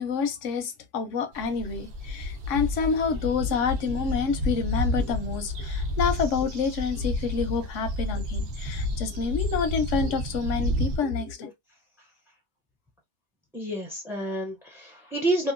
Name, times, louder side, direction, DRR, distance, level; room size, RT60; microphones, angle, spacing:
voice 1, 0.0-11.5, left 5 dB, 90° left, 1.0 m, -28 dB
sound 1, 1.3-11.0, left 1 dB, 65° right, 0.9 m, -30 dB
voice 2, 13.5-15.5, right 1 dB, 5° right, 0.3 m, -29 dB
2.9 x 2.3 x 2.4 m
omnidirectional pair, 1.2 m